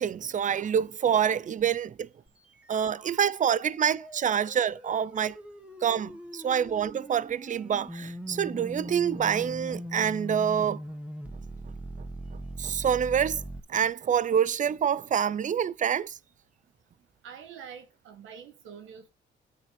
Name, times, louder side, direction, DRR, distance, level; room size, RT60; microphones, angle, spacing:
voice 1, 0.0-2.1 2.7-5.4 5.8-10.8 12.6-13.4 13.7-16.1, right 8 dB, 40° right, 0.6 m, -26 dB
sound 1, 2.3-13.6, equal, 5° right, 2.1 m, -41 dB
voice 2, 17.2-19.1, right 7 dB, 80° right, 2.0 m, -45 dB
9.1 x 8.5 x 4.3 m
cardioid pair, 90°, 20 cm